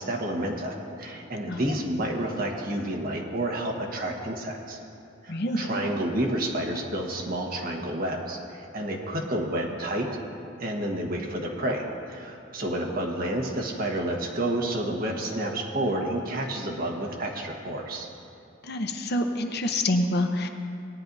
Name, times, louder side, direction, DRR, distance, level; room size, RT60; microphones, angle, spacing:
voice 1, 0.0-4.8 5.2-10.1 10.6-18.1, right 1 dB, 50° right, 1 dB, 1.3 m, -30 dB
voice 2, 5.3-5.7 18.7-20.5, left 1 dB, 60° left, 5 dB, 0.8 m, -26 dB
18.0 x 10.0 x 2.7 m, 2.6 s
head